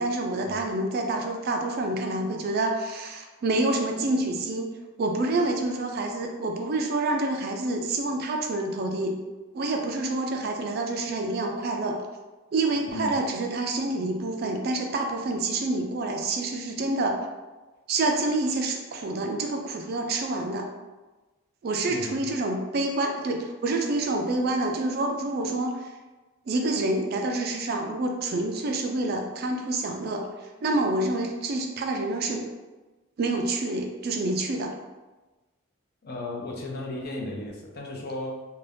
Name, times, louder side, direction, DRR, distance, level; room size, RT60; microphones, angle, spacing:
voice 1, 0.0-4.7 5.0-9.1 9.5-12.0 12.5-17.3 17.9-20.7 21.6-25.9 26.5-30.3 30.6-32.5 33.2-34.7, right 2 dB, 50° right, 3 dB, 0.3 m, -27 dB
voice 2, 12.9-13.2 21.8-22.3 36.0-38.5, left 1 dB, 50° left, 0 dB, 0.5 m, -35 dB
2.6 x 2.2 x 3.2 m, 1.2 s
head